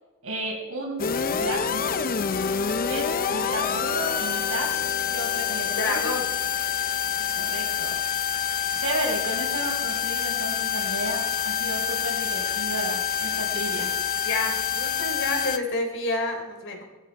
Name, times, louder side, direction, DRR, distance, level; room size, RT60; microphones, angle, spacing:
voice 1, 0.2-2.0 2.9-4.7 5.1-6.0 7.3-8.0 8.7-13.9, right 1 dB, 70° right, 0 dB, 4.9 m, -33 dB
minibrute-test, 1.0-15.6, left 7 dB, 40° left, 0.6 m, -27 dB
voice 2, 5.8-6.3 14.2-16.8, left 2 dB, 60° left, 2 dB, 3.5 m, -29 dB
20.5 x 14.5 x 4.7 m, 1.2 s
head